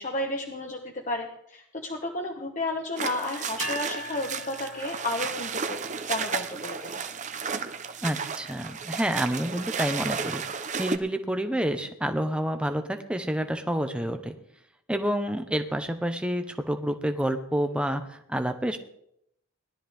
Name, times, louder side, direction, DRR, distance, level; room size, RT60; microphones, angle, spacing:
voice 1, 0.0-5.8 6.1-7.0, left 2 dB, 35° left, 1 dB, 1.1 m, -32 dB
sound 1, 3.0-11.0, right 6 dB, 35° right, 0.7 m, -33 dB
sound 2, 3.6-5.7, equal, 75° left, 2.6 m, -39 dB
voice 2, 8.0-10.4 10.8-14.4 14.9-18.8, equal, 5° right, 6 dB, 0.9 m, -28 dB
19.5 x 12.0 x 3.5 m, 0.73 s
head